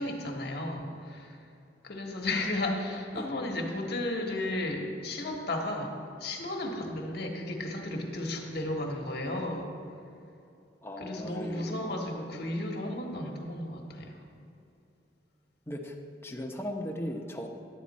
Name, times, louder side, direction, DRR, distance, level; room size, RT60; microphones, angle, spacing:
voice 1, 0.0-1.4 1.8-9.7 11.0-14.2, left 1 dB, 65° left, 0 dB, 1.4 m, -34 dB
voice 2, 10.8-11.9 15.7-15.9 16.2-17.5, equal, 15° left, 1 dB, 0.8 m, -37 dB
11.0 x 8.5 x 4.2 m, 2.6 s
head